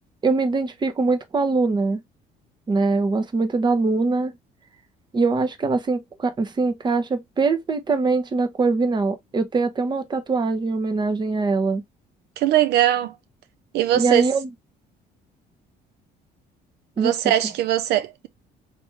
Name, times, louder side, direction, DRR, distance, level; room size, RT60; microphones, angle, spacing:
voice 1, 0.2-2.0 2.7-4.3 5.1-11.8 13.9-14.5 17.0-17.1, right 3 dB, 25° right, 0.8 m, -22 dB
voice 2, 12.4-13.1 13.7-14.2 17.0-18.3, right 12 dB, 75° right, 0.4 m, -21 dB
3.3 x 3.0 x 3.1 m
cardioid pair, 110°, 17 cm